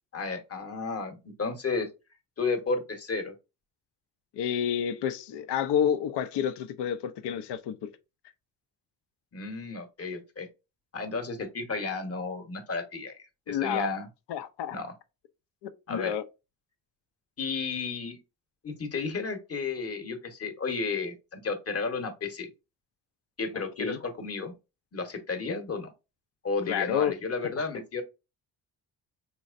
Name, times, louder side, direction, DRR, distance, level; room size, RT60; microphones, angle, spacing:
voice 1, 0.1-1.9 2.4-3.3 9.3-10.5 10.9-13.1 13.5-14.1 14.7-14.9 15.9-16.1 17.4-18.2 18.6-22.5 23.4-24.5 24.9-25.9 26.4-28.0, left 4 dB, 35° left, 1.0 m, -32 dB
voice 2, 4.3-7.9 13.5-13.9 14.3-14.8 15.6-16.2 23.5-24.0 26.7-27.1 27.6-27.7, left 9 dB, 70° left, 0.6 m, -29 dB
4.2 x 3.0 x 2.5 m
cardioid pair, 80°, 42 cm